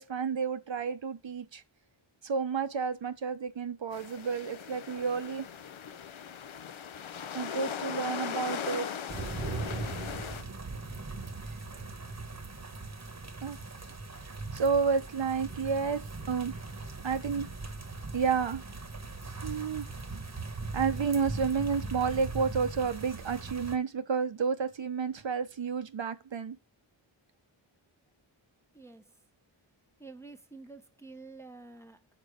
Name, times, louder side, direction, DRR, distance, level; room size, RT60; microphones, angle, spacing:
voice 1, 0.0-1.6 2.2-5.4 7.3-8.9 11.4-11.8 13.4-13.6 14.2-16.5 17.0-17.5 18.1-18.6 19.4-19.9 20.7-26.5, right 5 dB, 60° right, 0.8 m, -31 dB
sound 1, 3.9-10.4, left 8 dB, 70° left, 0.6 m, -39 dB
sound 2, 9.1-23.8, right 3 dB, 30° right, 1.1 m, -40 dB
voice 2, 28.7-29.1 30.0-32.1, right 3 dB, 5° left, 0.7 m, -49 dB
6.8 x 4.0 x 4.9 m
wide cardioid pair, 50°, 50 cm